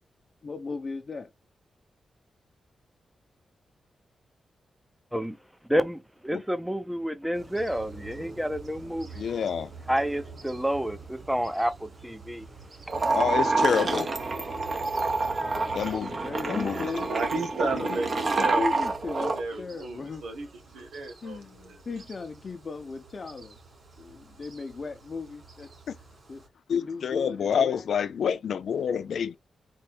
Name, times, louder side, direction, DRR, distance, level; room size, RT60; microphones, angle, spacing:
voice 1, 0.4-1.3 15.9-17.5 17.9-18.0 18.4-20.2 21.2-23.6 24.0-25.7 26.3-26.4 26.7-27.8, left 4 dB, 50° left, 0.8 m, -37 dB
voice 2, 5.7-9.4 9.9-12.5 15.3-15.7, equal, 5° right, 0.7 m, -30 dB
sound 1, 7.3-26.5, right 4 dB, 65° right, 2.9 m, -47 dB
voice 3, 9.2-9.7 13.1-14.1 15.7-16.2 16.5-16.8 26.7-29.3, left 7 dB, 80° left, 0.3 m, -27 dB
sound 2, 12.9-19.4, right 3 dB, 50° right, 1.1 m, -27 dB
voice 4, 17.1-18.9 19.2-21.8, right 3 dB, 90° right, 1.2 m, -34 dB
4.5 x 2.7 x 3.4 m
cardioid pair, 60°, 0 cm